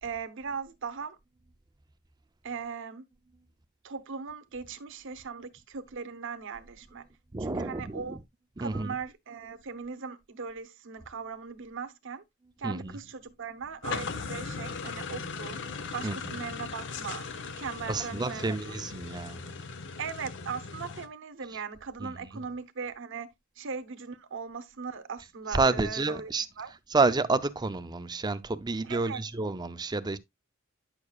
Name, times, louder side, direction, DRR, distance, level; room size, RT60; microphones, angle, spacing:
voice 1, 0.0-1.2 2.4-3.0 3.8-7.0 7.4-8.2 8.6-12.2 12.6-15.6 15.9-17.2 17.6-18.7 20.0-26.3 26.6-26.7 28.8-29.2, right 5 dB, 60° right, 0.9 m, -39 dB
voice 2, 7.3-8.2 8.6-9.0 12.6-13.0 16.0-16.4 17.9-19.5 22.0-22.4 25.5-26.5 26.9-30.2, right 3 dB, 20° right, 0.5 m, -29 dB
sound 1, 13.8-21.1, left 5 dB, 60° left, 0.8 m, -38 dB
9.7 x 6.6 x 2.3 m
head